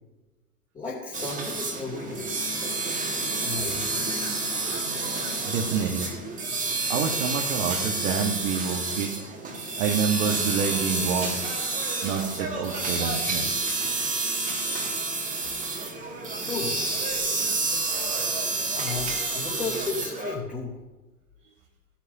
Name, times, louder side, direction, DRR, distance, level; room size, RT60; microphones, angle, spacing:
voice 1, 0.7-2.3 3.4-3.8 16.4-16.8 18.7-20.8, left 4 dB, 15° left, -7 dB, 3.1 m, -34 dB
sound 1, 1.1-20.4, right 3 dB, 15° right, 2.1 m, -29 dB
voice 2, 5.4-6.1 6.9-9.3 9.8-11.3 12.0-13.5, right 6 dB, 50° right, 0 dB, 1.5 m, -27 dB
17.0 x 10.5 x 2.8 m, 1.1 s
figure-of-eight pair, 95°, 47 cm